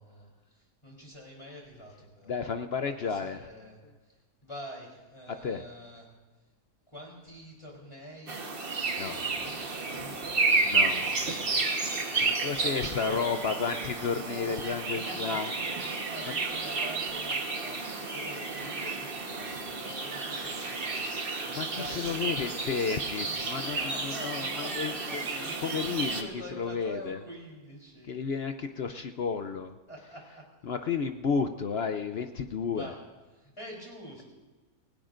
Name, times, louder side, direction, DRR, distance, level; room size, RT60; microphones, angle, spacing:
voice 1, 0.0-2.3 2.8-3.8 4.0-4.2 4.4-6.1 6.9-8.5 8.8-13.7 14.4-14.6 15.0-15.4 15.8-22.9 23.3-23.4 23.7-28.2 29.9-30.5 32.7-33.0 33.3-34.2, equal, 15° left, -3 dB, 3.6 m, -46 dB
voice 2, 2.3-3.4 5.4-5.6 9.0-9.5 10.5-11.3 12.2-15.5 15.8-15.9 21.5-27.2 28.1-29.8 30.6-32.9, left 5 dB, 65° left, 8 dB, 0.6 m, -32 dB
sound 1, 8.3-26.2, right 3 dB, 35° right, 1.3 m, -31 dB
29.0 x 17.0 x 2.5 m, 1.2 s
omnidirectional pair, 1.8 m